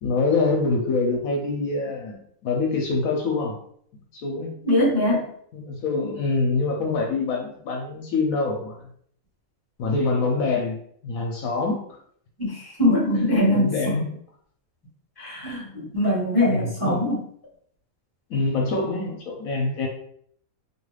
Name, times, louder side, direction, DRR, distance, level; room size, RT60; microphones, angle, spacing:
voice 1, 0.0-2.2 2.4-3.6 4.1-4.5 5.5-8.8 9.8-11.8 13.2-14.0 16.4-17.0 18.3-19.9, left 3 dB, 75° left, 0 dB, 1.0 m, -25 dB
voice 2, 4.7-5.3 12.4-14.1 15.2-17.2, left 1 dB, 15° left, -6 dB, 1.3 m, -22 dB
2.7 x 2.3 x 3.2 m, 0.63 s
omnidirectional pair, 1.5 m